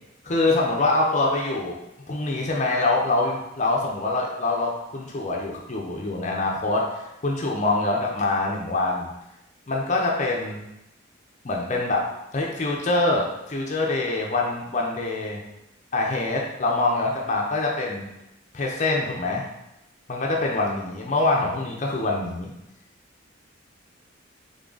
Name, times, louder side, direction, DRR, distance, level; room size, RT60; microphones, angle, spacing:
voice 1, 0.2-1.7 2.1-6.9 7.2-9.1 9.7-10.6 11.4-12.1 12.3-15.4 15.9-18.0 18.5-19.5 20.1-22.5, left 2 dB, 35° left, -1 dB, 0.5 m, -24 dB
3.7 x 3.6 x 3.9 m, 0.90 s
head